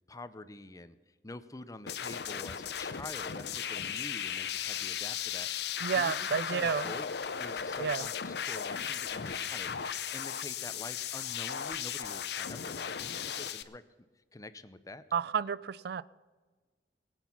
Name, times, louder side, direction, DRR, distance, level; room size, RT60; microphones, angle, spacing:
voice 1, 0.1-1.0 1.2-5.5 6.0-7.1 7.4-13.8 14.3-15.0, left 2 dB, 20° left, 0.6 m, -47 dB
sound 1, 1.8-2.9 4.0-4.7 5.7-6.5 7.6-8.0 8.5-10.7 11.3-11.4, left 1 dB, 5° right, 3.5 m, -60 dB
sound 2, 1.9-13.6, left 8 dB, 65° left, 0.6 m, -36 dB
voice 2, 5.8-6.9 7.8-8.1 15.1-16.0, right 6 dB, 60° right, 0.4 m, -31 dB
21.0 x 8.2 x 5.9 m
head